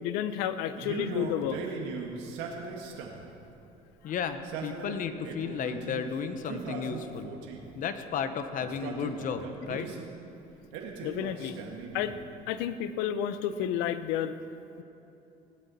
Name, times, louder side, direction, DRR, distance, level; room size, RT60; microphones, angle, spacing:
voice 1, 0.0-1.6 11.0-11.6 11.9-12.2 12.5-14.4, left 10 dB, 90° left, 12 dB, 0.7 m, -31 dB
Male speech man speaking, 0.8-3.3 4.3-6.0 6.4-7.7 8.6-10.1 10.7-12.2, right 5 dB, 85° right, 1.7 m, -39 dB
voice 2, 4.0-7.4 7.7-9.9, left 6 dB, 50° left, 9 dB, 0.9 m, -33 dB
17.0 x 12.0 x 4.2 m, 2.8 s
cardioid pair, 115°, 17 cm